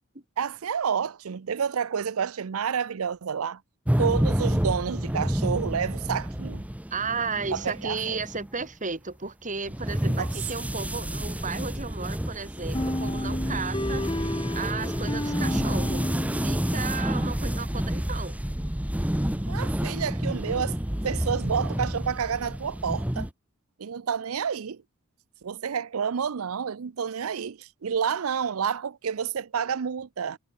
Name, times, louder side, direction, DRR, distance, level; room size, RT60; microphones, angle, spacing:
voice 1, 0.4-3.6 4.0-6.6 7.5-8.2 10.0-10.3 19.5-20.8 21.0-23.3 23.8-24.8 25.4-30.4, right 7 dB, 90° right, 0.5 m, -29 dB
sound 1, 3.9-8.6 9.6-23.3, equal, 5° right, 0.9 m, -29 dB
voice 2, 6.9-16.1 16.4-18.4, right 4 dB, 40° right, 4.2 m, -34 dB
sound 2, 12.7-17.4, left 1 dB, 25° left, 1.6 m, -33 dB
head